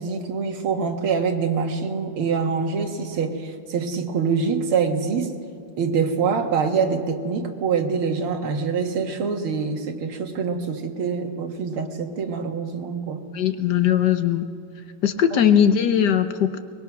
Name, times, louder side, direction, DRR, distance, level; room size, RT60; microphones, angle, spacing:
voice 1, 0.0-5.3 5.8-13.2 15.3-15.4, right 5 dB, 75° right, 4 dB, 2.4 m, -25 dB
voice 2, 13.3-14.5 15.0-16.6, left 9 dB, 60° left, 9 dB, 1.2 m, -19 dB
23.5 x 21.5 x 6.0 m, 2.3 s
omnidirectional pair, 2.4 m